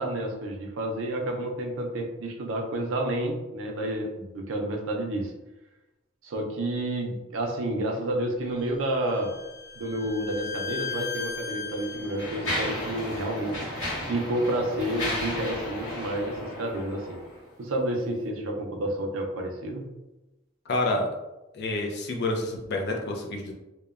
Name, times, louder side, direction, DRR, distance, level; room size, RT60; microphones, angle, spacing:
voice 1, 0.0-5.3 6.2-9.4 9.8-13.7 14.0-17.2 17.6-19.9, right 1 dB, 80° right, 2 dB, 0.5 m, -30 dB
Bowed string instrument, 8.6-12.4, left 5 dB, 10° right, 0.7 m, -37 dB
Mechanisms, 10.8-11.0 11.7-17.4, left 1 dB, 75° left, 0.9 m, -34 dB
voice 2, 20.7-21.1 21.5-23.5, left 2 dB, 55° left, 1 dB, 0.5 m, -28 dB
2.9 x 2.1 x 2.3 m, 1.0 s
head